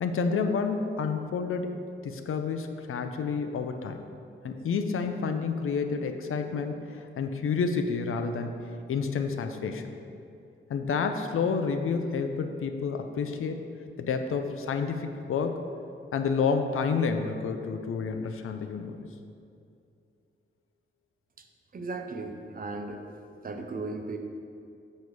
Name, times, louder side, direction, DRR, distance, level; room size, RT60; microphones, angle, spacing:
voice 1, 0.0-4.0 4.4-6.8 7.2-8.6 8.9-9.9 10.7-13.6 14.0-15.6 16.1-19.0, left 5 dB, 85° left, 6 dB, 0.5 m, -29 dB
voice 2, 21.7-23.2 23.4-24.2, right 3 dB, 45° right, 4 dB, 0.6 m, -36 dB
6.2 x 5.4 x 4.8 m, 2.5 s
wide cardioid pair, 130°, 21 cm